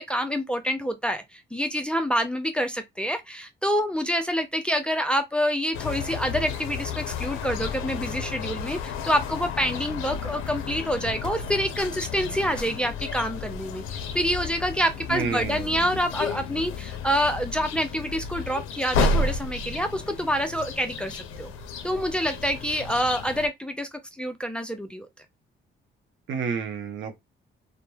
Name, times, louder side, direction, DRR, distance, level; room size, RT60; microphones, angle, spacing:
voice 1, 0.0-21.5 21.8-23.9 24.2-25.1, equal, 5° left, 0.4 m, -27 dB
sound 1, 5.7-23.5, left 4 dB, 90° left, 0.4 m, -32 dB
voice 2, 15.1-15.8 26.3-27.2, right 6 dB, 75° right, 0.6 m, -30 dB
3.0 x 2.1 x 2.2 m
cardioid pair, 90°, 20 cm